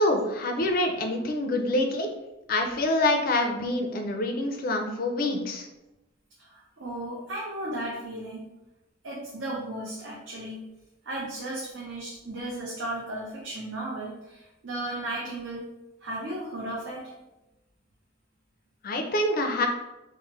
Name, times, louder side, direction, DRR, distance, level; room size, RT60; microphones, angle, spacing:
voice 1, 0.0-2.1 2.5-5.7 18.8-19.7, left 1 dB, 45° left, 4 dB, 0.4 m, -26 dB
voice 2, 6.5-8.4 9.0-10.6 11.1-15.6 16.0-17.1, right 1 dB, 70° right, -4 dB, 0.6 m, -35 dB
3.1 x 2.0 x 3.1 m, 0.97 s
head